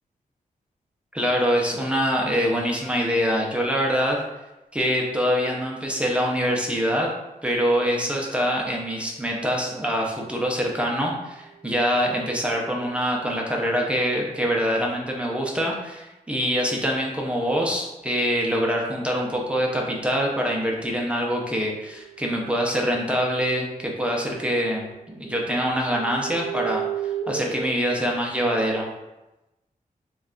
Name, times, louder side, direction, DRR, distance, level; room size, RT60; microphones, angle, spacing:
voice 1, 1.1-4.2 4.7-7.1 7.4-28.9, equal, 10° right, -2 dB, 0.5 m, -24 dB
sound 1, 11.6-13.0 20.8-24.4 24.7-27.9, right 8 dB, 80° right, 0.4 m, -36 dB
3.2 x 2.3 x 3.6 m, 1.0 s
wide cardioid pair, 170°, 15 cm